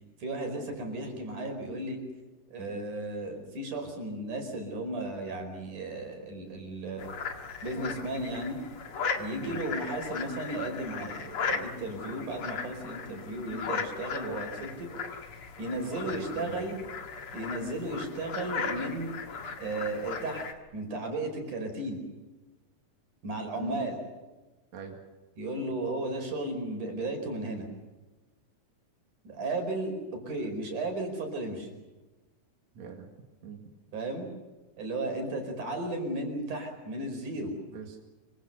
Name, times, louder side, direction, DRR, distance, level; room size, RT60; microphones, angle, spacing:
voice 1, 0.2-2.0 2.5-7.1 7.6-8.6 9.2-15.2 15.6-16.8 17.3-19.1 19.6-20.4 20.7-22.0 23.2-24.0 25.4-27.7 29.2-31.7 33.9-34.3 34.8-37.5, right 2 dB, 85° right, 4 dB, 6.5 m, -34 dB
sound 1, 7.0-20.5, left 5 dB, 50° left, 2.7 m, -37 dB
voice 2, 16.1-16.7 23.6-23.8 24.7-25.0 32.8-33.1 33.4-33.6 37.7-38.0, right 6 dB, 65° right, 2 dB, 3.4 m, -43 dB
26.5 x 25.0 x 6.7 m, 1.2 s
omnidirectional pair, 3.5 m